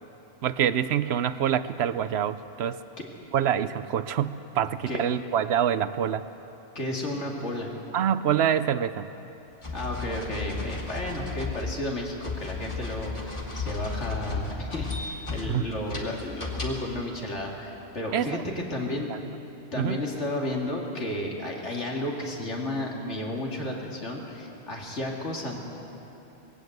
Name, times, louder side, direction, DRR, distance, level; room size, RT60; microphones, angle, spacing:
voice 1, 0.4-2.8 3.3-6.2 7.9-9.1 15.5-15.6 18.1-18.3 19.8-20.0, right 9 dB, 70° right, 14 dB, 0.8 m, -26 dB
voice 2, 4.6-5.0 6.7-7.7 9.7-19.1 19.7-25.6, left 1 dB, 75° left, -1 dB, 2.9 m, -32 dB
sound 1, 9.6-17.0, left 4 dB, 25° left, 2.0 m, -34 dB
19.5 x 17.0 x 8.0 m, 3.0 s
omnidirectional pair, 1.2 m